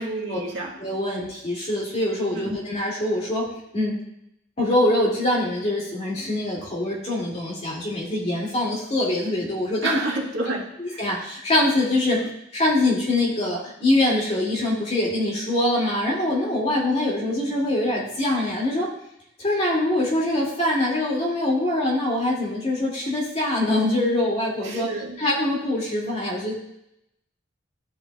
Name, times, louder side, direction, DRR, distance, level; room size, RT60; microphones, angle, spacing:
voice 1, 0.0-0.7 2.3-2.5 9.8-11.0 24.6-25.2, right 2 dB, 85° right, -2 dB, 1.8 m, -29 dB
voice 2, 0.8-3.5 3.7-4.0 4.6-10.0 10.8-12.2 12.5-18.9 19.4-26.5, left 1 dB, 35° left, -3 dB, 2.3 m, -24 dB
12.5 x 5.2 x 2.3 m, 0.79 s
head